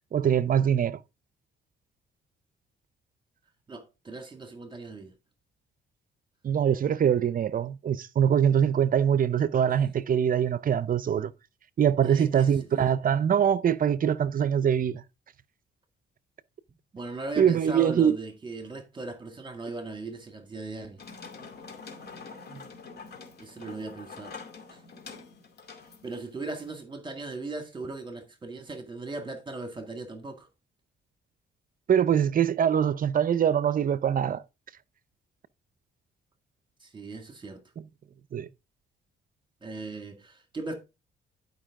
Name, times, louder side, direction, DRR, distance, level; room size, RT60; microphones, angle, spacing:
voice 1, 0.1-1.0 6.4-11.3 11.8-15.0 17.4-18.2 22.5-22.6 31.9-34.4 38.3-38.5, right 8 dB, 45° right, 0.6 m, -23 dB
voice 2, 3.7-5.1 12.0-12.5 16.9-21.0 23.4-24.4 24.7-24.8 26.0-30.5 36.8-37.6 39.6-40.7, right 3 dB, 25° right, 2.0 m, -38 dB
sound 1, 21.0-26.7, left 4 dB, 55° left, 2.3 m, -45 dB
11.5 x 5.3 x 3.7 m
cardioid pair, 90°, 20 cm